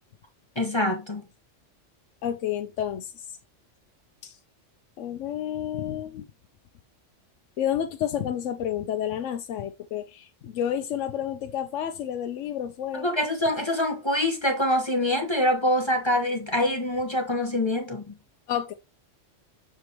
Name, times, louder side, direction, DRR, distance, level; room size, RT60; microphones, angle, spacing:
voice 1, 0.6-1.2 13.0-18.0, left 1 dB, 25° left, 1.0 m, -25 dB
voice 2, 2.2-3.3 4.2-4.4 5.0-6.3 7.6-13.1 18.5-18.7, left 10 dB, 80° left, 0.9 m, -30 dB
6.8 x 5.1 x 2.9 m
omnidirectional pair, 1.3 m